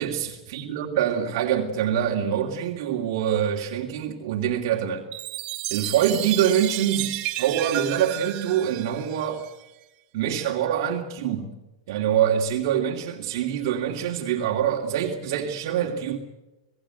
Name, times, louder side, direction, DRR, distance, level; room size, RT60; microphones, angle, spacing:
voice 1, 0.0-5.1 5.7-9.4 10.1-11.5 11.9-16.2, right 9 dB, 60° right, 1 dB, 2.7 m, -25 dB
Chime, 5.1-9.7, right 17 dB, 45° right, 1.7 m, -32 dB
27.5 x 18.5 x 7.9 m, 1.0 s
hypercardioid pair, 115°, 2 cm